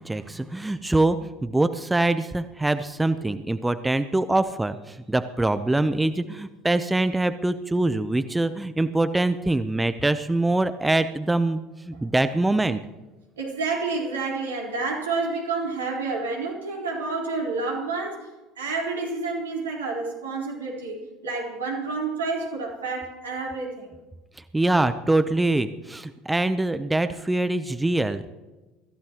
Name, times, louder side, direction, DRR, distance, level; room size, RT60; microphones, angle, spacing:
voice 1, 0.0-12.8 24.4-28.3, right 2 dB, 10° right, 12 dB, 0.7 m, -24 dB
voice 2, 13.4-18.3 18.6-23.9, right 3 dB, 80° right, -2 dB, 4.1 m, -29 dB
24.5 x 15.0 x 3.0 m, 1.2 s
figure-of-eight pair, 65°, 0 cm